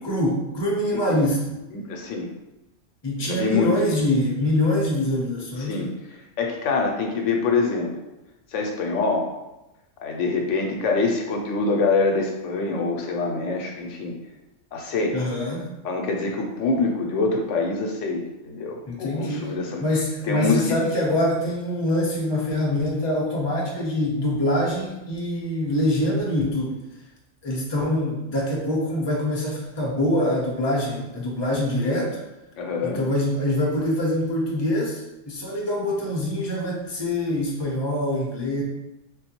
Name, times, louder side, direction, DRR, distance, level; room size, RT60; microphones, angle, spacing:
voice 1, 0.0-1.5 3.0-5.8 15.1-15.7 18.9-19.5 19.8-26.7 27.4-32.1 32.8-35.0 35.3-38.6, left 1 dB, 25° left, -3 dB, 0.6 m, -24 dB
voice 2, 1.7-2.3 3.2-4.0 5.6-5.9 6.4-7.9 8.5-9.3 10.0-14.1 14.7-15.2 15.8-19.8 20.2-20.8 31.9-32.1 32.6-33.0, left 3 dB, 80° left, 2 dB, 0.9 m, -25 dB
3.6 x 2.2 x 2.9 m, 0.95 s
omnidirectional pair, 1.3 m